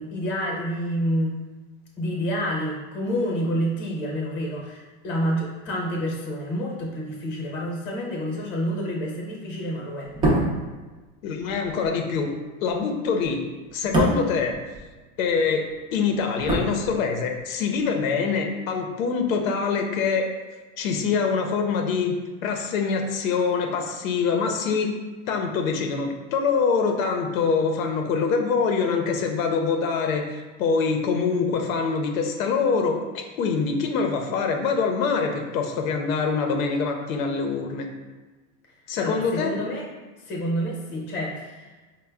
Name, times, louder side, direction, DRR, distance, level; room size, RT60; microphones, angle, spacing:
voice 1, 0.0-1.3 2.0-10.1 39.0-39.8 40.3-41.7, equal, 25° left, -1 dB, 0.8 m, -28 dB
sound 1, 10.0-15.3 15.6-17.4 17.7-17.9, right 1 dB, 15° right, 0.4 m, -27 dB
voice 2, 11.2-12.3 12.6-13.4 13.7-14.6 15.2-20.3 20.8-22.1 22.4-24.9 25.3-37.9 38.9-39.6, left 5 dB, 90° left, 4 dB, 0.7 m, -24 dB
4.2 x 2.2 x 3.4 m, 1.3 s
supercardioid pair, 150°, 40 cm